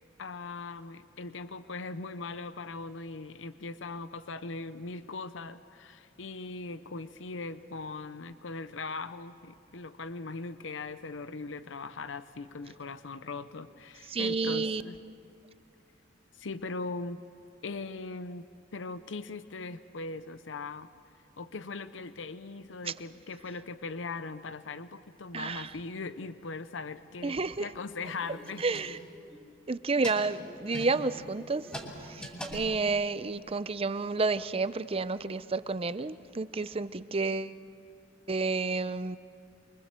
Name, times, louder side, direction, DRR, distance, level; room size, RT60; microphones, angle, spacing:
voice 1, 0.2-15.0 16.3-17.2 17.6-20.9 21.4-28.6, left 3 dB, 75° left, 12 dB, 0.7 m, -40 dB
voice 2, 14.1-14.8 22.8-22.9 25.3-25.7 27.2-27.7 28.6-29.0 29.7-31.7 32.0-37.6 38.3-39.2, right 3 dB, 30° right, 14 dB, 0.6 m, -30 dB
sound 1, 28.0-29.4 29.8-33.3, equal, 5° left, 3.0 m, -43 dB
25.0 x 23.5 x 7.6 m, 2.3 s
head